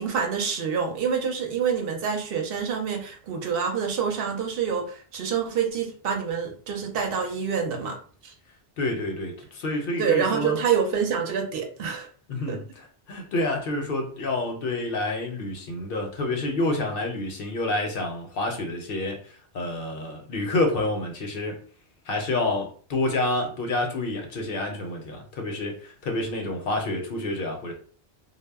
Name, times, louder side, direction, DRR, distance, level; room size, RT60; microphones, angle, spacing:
voice 1, 0.0-8.0 8.2-8.3 10.0-12.1 12.5-12.6, right 6 dB, 65° right, 3 dB, 0.8 m, -27 dB
voice 2, 8.8-10.6 12.3-19.2 19.5-21.6 22.1-27.7, left 2 dB, 65° left, 3 dB, 0.7 m, -28 dB
2.0 x 2.0 x 3.3 m, 0.43 s
omnidirectional pair, 1.1 m